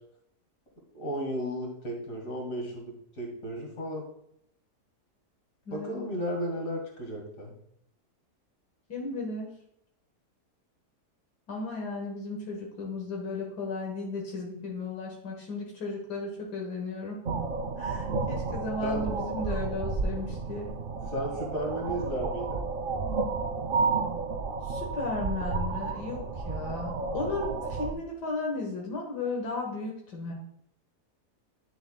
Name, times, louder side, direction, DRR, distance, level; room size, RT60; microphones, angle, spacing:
voice 1, 0.9-4.0 5.7-7.5 18.8-19.3 21.1-22.6, equal, 55° left, 0 dB, 2.5 m, -34 dB
voice 2, 5.7-6.1 8.9-9.5 11.5-17.2 17.8-20.7 24.6-30.3, left 3 dB, 80° left, -1 dB, 1.9 m, -35 dB
sound 1, 17.3-27.9, right 4 dB, 80° right, 0.4 m, -31 dB
10.5 x 6.9 x 2.3 m, 0.73 s
omnidirectional pair, 1.7 m